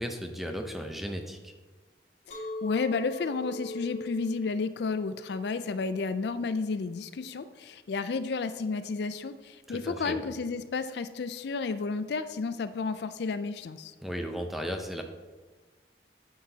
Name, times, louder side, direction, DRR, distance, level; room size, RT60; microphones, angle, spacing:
voice 1, 0.0-1.5 9.7-10.3 14.0-15.0, equal, ahead, 4 dB, 0.6 m, -35 dB
voice 2, 2.3-13.9, left 4 dB, 65° left, 12 dB, 0.4 m, -32 dB
Chink clink, 2.3-7.5, left 2 dB, 45° left, 1.8 m, -42 dB
9.4 x 7.9 x 2.8 m, 1.3 s
head